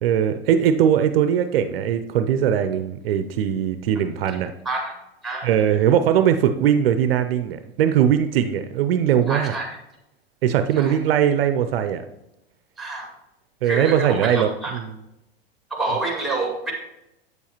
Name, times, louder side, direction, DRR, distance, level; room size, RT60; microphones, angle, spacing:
voice 1, 0.0-4.5 5.4-9.5 10.4-12.0 13.6-14.9, right 9 dB, 65° right, 9 dB, 0.6 m, -20 dB
voice 2, 5.2-5.6 9.3-9.7 10.8-11.0 12.8-13.1 13.6-14.7 15.7-16.7, right 2 dB, ahead, 1 dB, 2.0 m, -27 dB
8.2 x 6.9 x 2.9 m, 0.88 s
hypercardioid pair, 100°, 31 cm